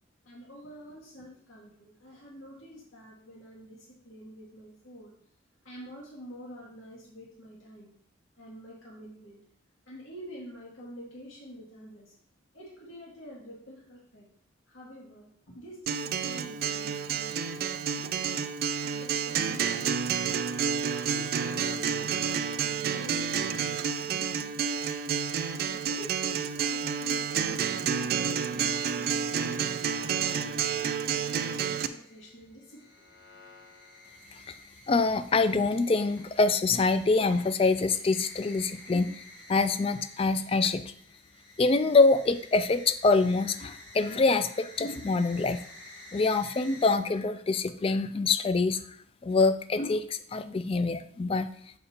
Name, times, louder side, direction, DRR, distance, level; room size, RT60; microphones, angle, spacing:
voice 1, 0.3-5.1 5.6-7.9 8.4-9.4 9.9-12.1 12.5-14.3 14.7-17.6 18.0-18.5 18.7-20.6 22.6-24.7 25.5-29.7 30.0-33.1 33.7-33.8, equal, 85° left, -5 dB, 2.3 m, -47 dB
Acoustic guitar, 15.9-31.9, right 7 dB, 50° right, 0.3 m, -30 dB
sound 1, 31.0-47.0, left 2 dB, 60° left, 1.5 m, -51 dB
voice 2, 34.9-39.2 39.5-40.9 41.6-45.6 46.1-48.8 49.2-51.5, left 3 dB, 30° left, 11 dB, 0.3 m, -25 dB
6.7 x 5.5 x 2.9 m, 0.63 s
head